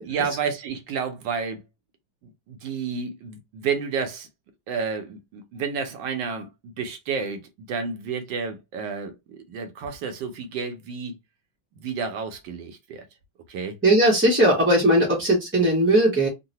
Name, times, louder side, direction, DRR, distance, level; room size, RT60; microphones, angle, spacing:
voice 1, 0.0-1.6 2.2-4.3 4.7-11.1 11.8-13.1 13.5-13.8, right 6 dB, 75° right, 1.3 m, -31 dB
voice 2, 13.8-16.3, right 1 dB, 15° right, 0.4 m, -18 dB
3.8 x 2.0 x 2.7 m
omnidirectional pair, 2.1 m